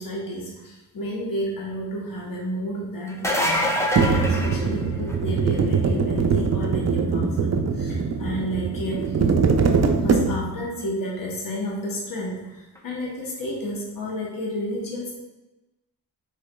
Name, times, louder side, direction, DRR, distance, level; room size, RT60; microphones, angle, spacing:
voice 1, 0.0-9.2 10.0-15.1, equal, 55° left, -3 dB, 1.0 m, -31 dB
sound 1, 3.1-5.3 10.8-10.9 12.7-12.8, left 1 dB, 5° left, 0.5 m, -25 dB
sound 2, 4.0-10.7, right 5 dB, 40° right, 0.5 m, -22 dB
4.6 x 3.0 x 2.2 m, 1.1 s
cardioid pair, 50°, 41 cm